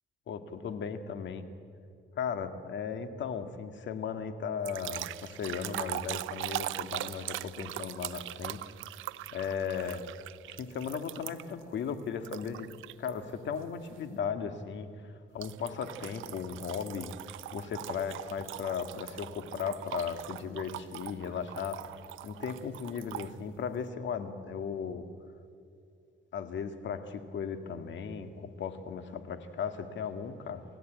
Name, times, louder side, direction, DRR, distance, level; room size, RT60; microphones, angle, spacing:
voice 1, 0.3-1.5 2.2-8.6 9.3-10.0 10.5-12.7 13.0-17.1 17.5-21.8 22.2-25.1 26.3-30.6, left 6 dB, 70° left, 8 dB, 1.9 m, -36 dB
sound 1, 4.6-11.6 12.2-13.1 13.6-13.9 15.4-23.3, right 15 dB, 90° right, 0.7 m, -41 dB
29.0 x 15.5 x 9.2 m, 2.3 s
cardioid pair, 90°, 20 cm